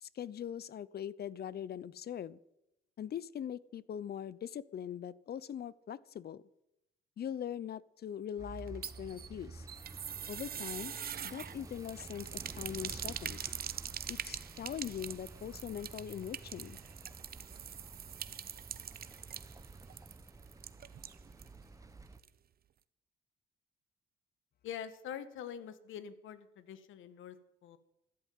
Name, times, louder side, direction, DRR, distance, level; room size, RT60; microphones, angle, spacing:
voice 1, 0.0-2.4 3.0-6.4 7.2-9.7 10.3-10.9 11.2-13.5 14.1-16.8, left 9 dB, 55° left, 19 dB, 0.8 m, -42 dB
sound 1, 8.4-22.2, right 3 dB, 15° right, 1.0 m, -51 dB
sound 2, 8.6-21.6 21.8-21.9 22.2-22.3, right 9 dB, 50° right, 0.8 m, -44 dB
voice 2, 24.6-27.4 27.6-27.8, left 9 dB, 80° left, 12 dB, 1.6 m, -44 dB
13.5 x 11.5 x 9.4 m, 0.85 s
cardioid pair, 90°, 20 cm